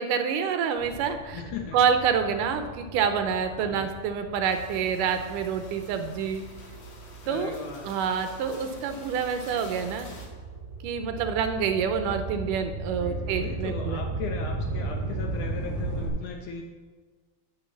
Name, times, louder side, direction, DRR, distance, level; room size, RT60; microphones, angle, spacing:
voice 1, 0.0-1.4 1.7-6.4 7.3-7.5 7.8-10.1 10.8-14.0, right 7 dB, 75° right, 7 dB, 2.1 m, -27 dB
sound 1, 0.8-7.5 8.1-16.1, right 2 dB, 15° right, 3.6 m, -36 dB
voice 2, 1.3-1.8 3.6-3.9 7.2-8.0 13.0-16.6, left 5 dB, 70° left, 2 dB, 2.0 m, -38 dB
sound 2, 4.4-10.3, right 2 dB, 50° left, 2.7 m, -46 dB
8.8 x 6.5 x 7.2 m, 1.4 s
omnidirectional pair, 4.2 m